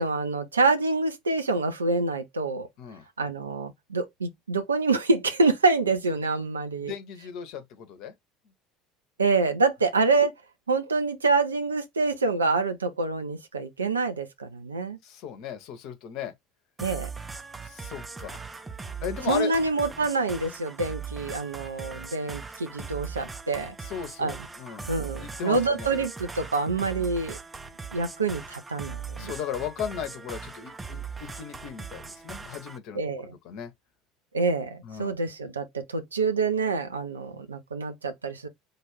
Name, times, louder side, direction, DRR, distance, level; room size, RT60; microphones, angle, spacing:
voice 1, 0.0-2.7 3.2-6.9 9.2-10.3 10.7-15.0 16.8-17.1 19.3-23.7 24.2-24.5 24.9-27.4 27.9-29.3 32.9-33.3 34.3-38.5, right 3 dB, 80° right, 0.8 m, -26 dB
voice 2, 6.8-8.1 15.0-16.3 17.6-18.4 19.0-19.5 23.8-24.9 25.2-25.9 27.0-27.1 29.2-33.7 34.8-35.1, left 9 dB, 55° left, 1.0 m, -36 dB
sound 1, 16.8-32.8, right 5 dB, 20° right, 0.7 m, -40 dB
4.0 x 2.6 x 3.5 m
figure-of-eight pair, 65°, 0 cm